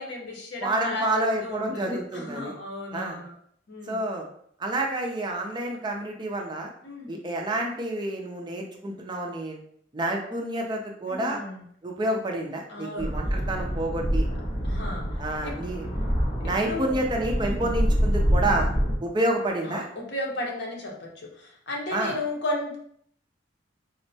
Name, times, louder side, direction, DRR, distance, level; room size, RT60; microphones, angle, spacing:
voice 1, 0.0-3.3 3.7-4.0 6.8-7.2 11.1-11.6 12.7-13.1 14.6-15.0 15.4-15.5 16.4-17.0 17.4-17.7 19.7-22.8, left 2 dB, 65° left, -1 dB, 0.8 m, -34 dB
voice 2, 0.6-2.5 2.9-3.2 3.9-4.3 4.6-6.7 7.1-9.6 9.9-11.4 11.8-14.3 15.2-15.9 16.4-18.7 19.0-19.9 21.9-22.2, right 1 dB, 25° right, 1 dB, 0.5 m, -29 dB
sound 1, 13.0-18.9, equal, 35° left, 1.0 m, -26 dB
4.3 x 2.1 x 2.7 m, 0.65 s
head